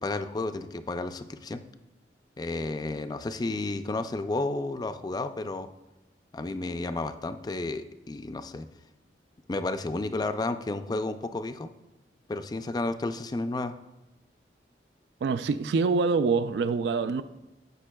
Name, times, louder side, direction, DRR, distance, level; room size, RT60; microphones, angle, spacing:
voice 1, 0.0-1.6 2.4-5.7 6.3-8.7 9.5-11.7 12.3-13.7, left 2 dB, 25° left, 9 dB, 0.3 m, -32 dB
voice 2, 15.2-17.2, right 4 dB, 70° right, 12 dB, 0.3 m, -25 dB
14.5 x 5.1 x 2.2 m, 1.0 s
head